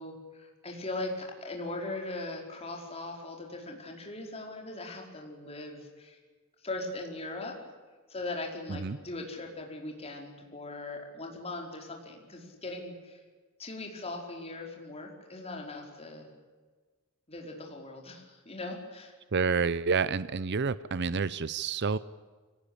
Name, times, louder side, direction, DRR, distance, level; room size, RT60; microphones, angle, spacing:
voice 1, 0.0-6.2 6.6-7.6 8.1-13.2 13.6-16.3 17.3-19.1, left 2 dB, 30° left, 1 dB, 4.9 m, -39 dB
voice 2, 19.3-22.0, right 5 dB, 55° right, 16 dB, 0.7 m, -29 dB
25.5 x 18.5 x 8.8 m, 1.4 s
head